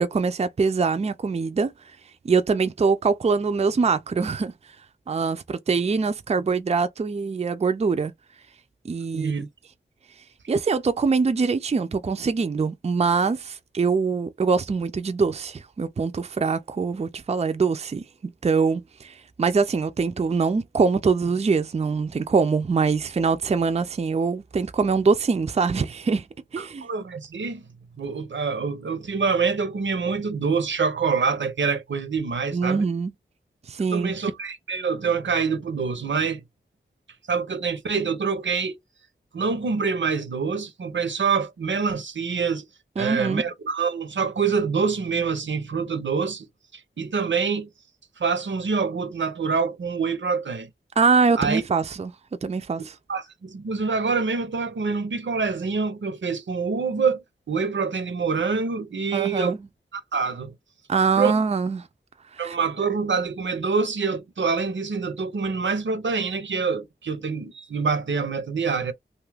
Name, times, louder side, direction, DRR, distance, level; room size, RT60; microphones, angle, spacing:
voice 1, 0.0-1.7 2.2-4.5 5.1-8.1 8.8-9.3 10.5-26.3 26.5-26.9 32.5-33.1 33.7-34.1 43.0-43.4 51.0-52.1 52.4-52.9 59.1-59.6 60.9-61.9 62.3-62.5, right 5 dB, 35° right, 0.4 m, -23 dB
voice 2, 9.1-9.5 26.6-27.6 28.0-32.8 33.9-36.4 37.3-38.8 39.3-42.6 43.0-46.5 46.7-47.7 48.2-50.7 51.4-51.6 53.1-59.5 59.9-60.5 61.2-61.3 62.4-68.9, right 5 dB, 75° right, 0.7 m, -26 dB
2.6 x 2.3 x 3.3 m
wide cardioid pair, 55°, 19 cm